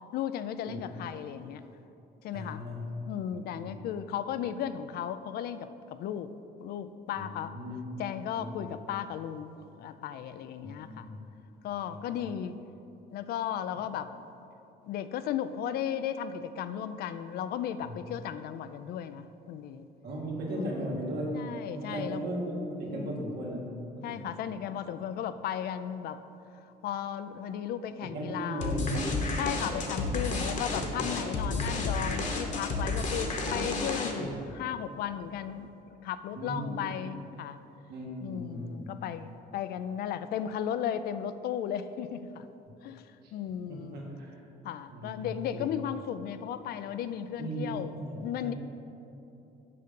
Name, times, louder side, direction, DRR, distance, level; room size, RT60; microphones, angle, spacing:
voice 1, 0.1-1.6 2.2-2.6 3.1-6.3 6.6-7.5 8.0-11.1 11.6-12.6 13.1-14.3 14.8-19.9 20.5-20.9 21.3-22.2 22.9-23.2 24.0-26.2 26.8-28.8 29.4-37.6 38.2-42.5 42.8-44.1 44.6-47.9 48.2-48.5, left 9 dB, 65° left, 12 dB, 0.4 m, -35 dB
voice 2, 2.3-2.9 3.3-3.7 7.1-7.3 7.5-7.9 8.4-8.7 10.6-11.2 11.9-12.0 17.9-18.0 20.0-21.3 21.6-24.4 28.0-29.0 29.9-30.1 30.7-31.0 34.1-34.5 36.3-36.8 37.9-38.9 43.2-43.3 43.7-44.4 44.9-45.7 47.4-47.7 48.0-48.5, right 1 dB, 70° right, -3 dB, 2.0 m, -37 dB
sound 1, 28.6-34.4, left 3 dB, 45° left, 1.1 m, -31 dB
6.7 x 5.1 x 7.0 m, 2.8 s
cardioid pair, 110°, 17 cm